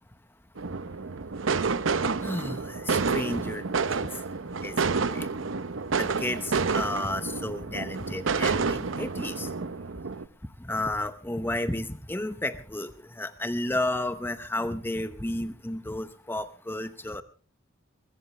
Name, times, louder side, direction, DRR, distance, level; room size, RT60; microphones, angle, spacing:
sound 1, 0.6-10.2, right 4 dB, 70° right, 0.7 m, -29 dB
voice 1, 2.2-4.1 4.6-4.7 5.1-5.3 5.9-9.5 10.7-12.9 13.2-17.2, left 1 dB, 10° left, 11 dB, 0.8 m, -32 dB
22.0 x 15.0 x 3.3 m, 0.35 s
head